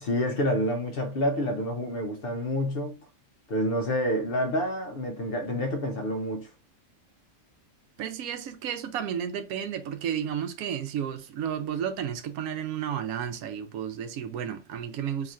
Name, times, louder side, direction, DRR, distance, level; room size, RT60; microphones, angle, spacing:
voice 1, 0.0-3.0 3.5-6.5, equal, 60° left, 0.6 m, -28 dB
voice 2, 8.0-15.3, right 9 dB, 85° right, 1.0 m, -32 dB
2.9 x 2.4 x 4.1 m
omnidirectional pair, 1.5 m